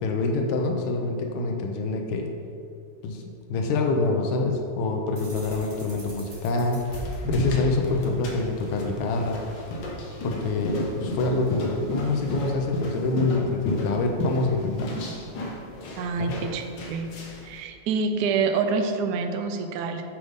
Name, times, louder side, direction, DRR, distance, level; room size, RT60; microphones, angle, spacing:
voice 1, 0.0-2.3 3.0-3.2 3.5-6.8 7.3-9.4 10.2-14.9 16.2-16.3, left 3 dB, 90° left, 2 dB, 1.5 m, -26 dB
sound 1, 5.1-9.0, left 1 dB, 60° right, 0.3 m, -37 dB
sound 2, 6.6-17.5, equal, 65° left, 1.4 m, -34 dB
voice 2, 16.0-16.6 16.9-17.1 17.4-20.0, right 5 dB, 75° right, 6 dB, 0.9 m, -26 dB
7.8 x 3.6 x 5.2 m, 2.4 s
omnidirectional pair, 2.3 m